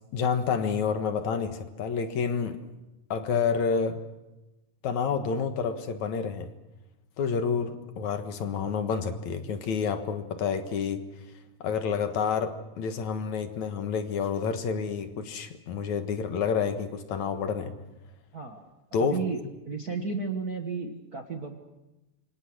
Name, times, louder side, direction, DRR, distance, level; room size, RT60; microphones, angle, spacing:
voice 1, 0.1-2.6 3.1-4.0 4.8-6.5 7.2-11.0 11.6-17.7 18.9-19.2, left 6 dB, 65° left, 7 dB, 2.8 m, -29 dB
voice 2, 18.3-18.7 19.0-21.6, right 4 dB, 40° right, 4 dB, 1.4 m, -33 dB
27.5 x 24.5 x 6.2 m, 1.0 s
omnidirectional pair, 3.7 m